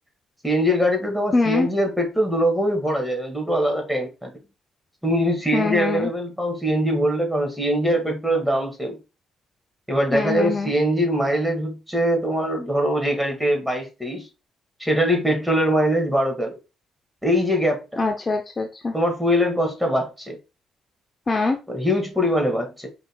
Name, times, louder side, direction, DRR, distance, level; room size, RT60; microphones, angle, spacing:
voice 1, 0.4-4.3 5.0-9.0 9.9-14.3 14.8-16.6 17.2-18.0 18.9-20.4 21.7-22.9, equal, ahead, 2.0 m, -22 dB
voice 2, 1.3-1.7 5.5-6.1 10.1-10.7 18.0-18.9 21.3-21.6, left 3 dB, 30° left, 0.7 m, -23 dB
5.2 x 3.9 x 2.3 m
cardioid pair, 90°, 0 cm